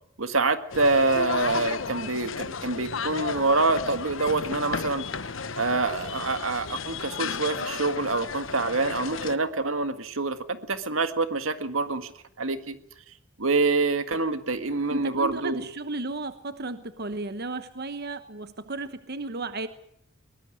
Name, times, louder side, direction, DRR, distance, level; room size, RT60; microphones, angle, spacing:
voice 1, 0.2-5.1 5.5-12.1 12.4-12.8 13.4-15.6, right 3 dB, 85° right, 9 dB, 1.9 m, -26 dB
sound 1, 0.7-9.4, left 5 dB, 70° left, 1.2 m, -33 dB
voice 2, 14.9-19.7, right 3 dB, 55° right, 10 dB, 1.2 m, -34 dB
22.5 x 20.0 x 6.4 m, 0.71 s
head